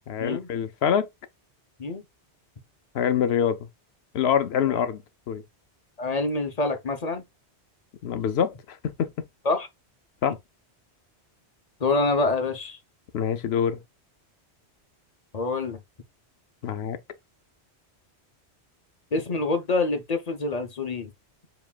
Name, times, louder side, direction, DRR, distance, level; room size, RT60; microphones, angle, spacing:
voice 1, 0.1-1.1 2.9-3.6 4.1-5.0 5.3-5.4 8.0-9.1 10.2-10.4 13.1-13.8 16.6-17.0, left 8 dB, 70° left, 0.9 m, -25 dB
voice 2, 6.0-7.2 9.4-9.7 11.8-12.8 15.3-15.8 19.1-21.1, left 3 dB, 40° left, 0.9 m, -26 dB
7.2 x 3.1 x 2.3 m
omnidirectional pair, 1.2 m